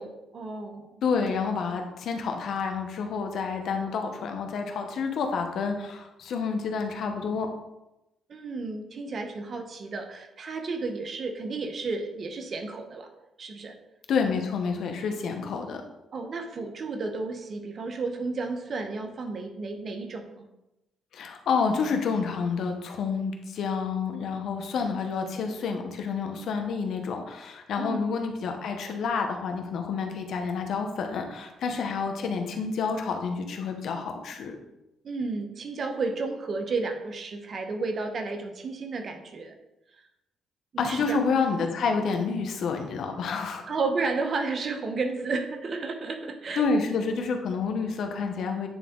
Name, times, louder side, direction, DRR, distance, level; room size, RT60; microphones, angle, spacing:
voice 1, 0.0-0.9 8.3-13.1 13.4-13.7 16.1-20.4 27.8-28.0 35.0-39.5 40.7-41.2 43.7-46.7, right 3 dB, 50° right, 5 dB, 0.9 m, -32 dB
voice 2, 1.0-7.5 14.1-15.8 21.1-34.6 40.8-43.6 46.6-48.7, left 5 dB, 70° left, 4 dB, 1.0 m, -29 dB
9.1 x 3.6 x 3.7 m, 0.93 s
cardioid pair, 90°, 0 cm